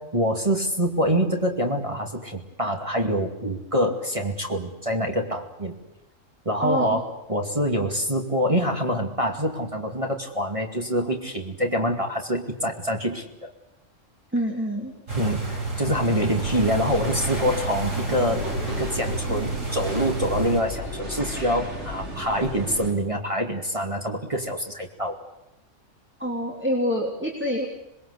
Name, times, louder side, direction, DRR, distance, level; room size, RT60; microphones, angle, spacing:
voice 1, 0.0-5.7 6.4-13.5 15.2-25.2, equal, 25° right, 2 dB, 2.5 m, -26 dB
voice 2, 6.6-7.0 14.3-14.9 26.2-27.7, equal, 10° right, -1 dB, 3.2 m, -26 dB
sound 1, 15.1-20.6, right 2 dB, 80° right, 6.0 m, -30 dB
sound 2, 16.4-22.9, equal, 65° right, 5.2 m, -35 dB
27.5 x 21.0 x 8.3 m, 0.92 s
omnidirectional pair, 1.3 m